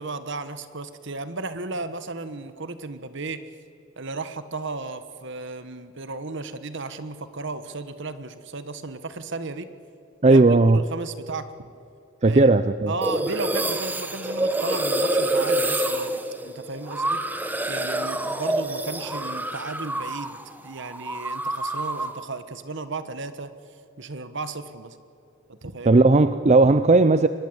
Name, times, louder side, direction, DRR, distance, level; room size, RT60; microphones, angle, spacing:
voice 1, 0.0-3.4 4.0-9.7 10.2-11.5 12.2-12.5 12.9-23.5 24.0-25.0 25.5-26.1, right 3 dB, 60° right, 12 dB, 1.3 m, -34 dB
voice 2, 10.2-10.8 12.2-12.9 25.9-27.3, right 3 dB, 30° right, 12 dB, 0.5 m, -16 dB
sound 1, 13.0-20.4 20.7-22.2, right 1 dB, 10° right, 1.0 m, -27 dB
24.5 x 20.0 x 8.0 m, 2.5 s
head